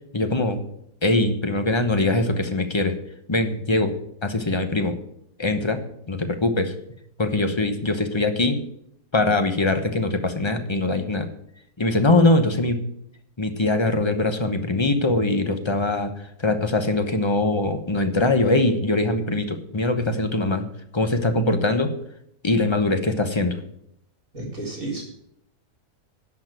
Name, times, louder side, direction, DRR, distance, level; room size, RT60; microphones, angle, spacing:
voice 1, 0.1-0.6 1.0-2.9 3.3-3.9 4.2-5.0 5.4-5.8 6.1-6.7 7.2-8.6 9.1-11.3 11.8-12.8 13.4-16.1 16.4-20.7 20.9-21.9 22.4-23.6, left 2 dB, 20° left, 7 dB, 0.9 m, -22 dB
voice 2, 24.3-25.0, right 2 dB, 55° right, -1 dB, 4.2 m, -31 dB
11.0 x 6.0 x 9.0 m, 0.73 s
omnidirectional pair, 1.7 m